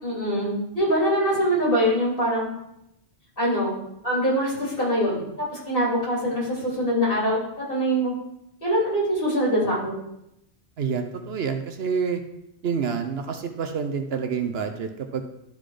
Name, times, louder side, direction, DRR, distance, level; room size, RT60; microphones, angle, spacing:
voice 1, 0.0-2.5 3.4-3.7 4.0-7.4 7.7-8.1 8.6-10.0, equal, 50° left, -5 dB, 3.4 m, -23 dB
voice 2, 10.8-12.2 12.6-15.2, right 6 dB, 65° right, 6 dB, 0.9 m, -28 dB
12.0 x 4.1 x 4.9 m, 0.83 s
omnidirectional pair, 1.2 m